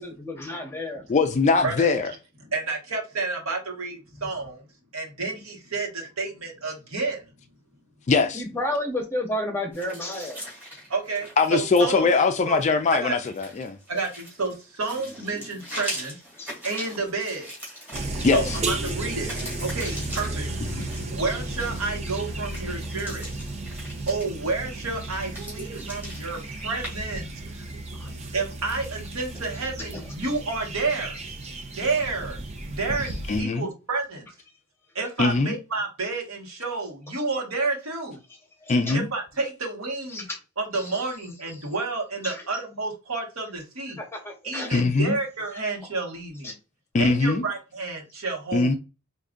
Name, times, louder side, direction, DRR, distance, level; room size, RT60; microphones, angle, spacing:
voice 1, 0.0-1.0 8.3-10.4 16.4-16.5 28.0-28.1 33.1-33.2 38.6-39.0 40.1-40.4 40.8-40.9 42.2-42.4 44.0-44.7 46.4-46.5, left 1 dB, 10° left, 0.9 m, -31 dB
voice 2, 1.1-2.1 8.1-8.4 11.4-13.8 18.2-18.6 20.7-20.9 33.3-33.7 35.2-35.5 38.7-39.1 44.7-45.2 46.9-47.4 48.5-48.7, left 4 dB, 30° left, 0.3 m, -21 dB
voice 3, 2.5-4.6 4.9-7.2 10.9-12.1 12.5-12.6 13.0-13.1 13.9-16.1 16.6-17.5 18.3-19.3 19.6-20.5 21.1-23.3 24.1-27.3 28.3-31.2 31.8-32.4 32.7-33.1 33.4-34.2 34.9-38.2 38.9-40.2 40.6-44.0 44.4-46.5 47.0-48.8, right 3 dB, 70° right, 1.3 m, -30 dB
sound 1, 9.7-26.9, equal, 10° right, 2.2 m, -41 dB
sound 2, 17.9-33.4, right 2 dB, 30° right, 0.5 m, -34 dB
4.8 x 2.5 x 2.5 m
head